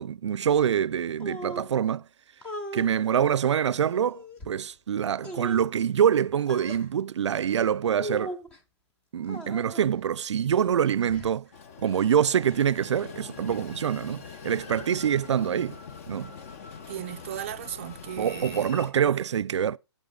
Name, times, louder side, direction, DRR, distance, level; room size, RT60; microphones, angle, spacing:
voice 1, 0.0-2.0 2.7-8.4 9.1-11.5 11.8-15.8 16.1-16.3 18.2-19.8, right 8 dB, 80° right, 0.5 m, -25 dB
sound 1, 1.2-1.7 2.4-2.9 3.6-4.5 5.2-5.7 6.5-6.9 8.0-8.6 9.2-9.9 10.6-11.4, equal, 10° left, 0.7 m, -39 dB
Train, 11.5-18.9, left 6 dB, 30° left, 1.1 m, -43 dB
voice 2, 16.9-18.7 19.4-19.5, right 11 dB, 30° right, 0.5 m, -37 dB
8.7 x 8.1 x 3.8 m
hypercardioid pair, 175°, 15 cm